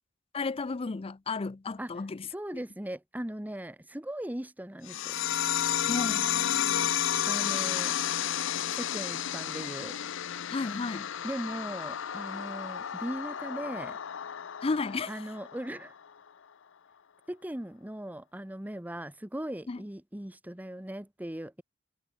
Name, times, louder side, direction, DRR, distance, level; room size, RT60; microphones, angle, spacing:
voice 1, 0.3-2.3 5.9-6.3 10.5-11.1 14.6-15.1 19.7-19.8, left 4 dB, 30° left, 0.4 m, -32 dB
voice 2, 2.3-5.1 7.2-7.9 8.7-9.9 11.2-14.0 15.1-15.9 17.3-21.6, right 1 dB, 10° right, 0.9 m, -39 dB
sound 1, 4.9-15.9, left 10 dB, 65° left, 0.6 m, -32 dB
head